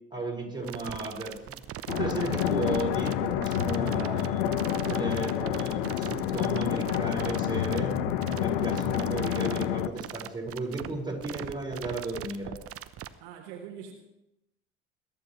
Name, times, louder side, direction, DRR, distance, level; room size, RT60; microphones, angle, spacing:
voice 1, 0.1-1.5 1.9-4.4 4.9-8.0 8.3-12.6, right 2 dB, 15° right, -1 dB, 5.3 m, -34 dB
sound 1, 0.6-13.1, right 11 dB, 40° right, 0.8 m, -40 dB
sound 2, 1.9-9.9, left 11 dB, 65° left, 1.0 m, -28 dB
voice 2, 3.9-4.4 13.2-13.9, right 8 dB, 65° right, 2 dB, 1.6 m, -44 dB
22.0 x 11.5 x 3.2 m, 0.89 s
hypercardioid pair, 60°, 34 cm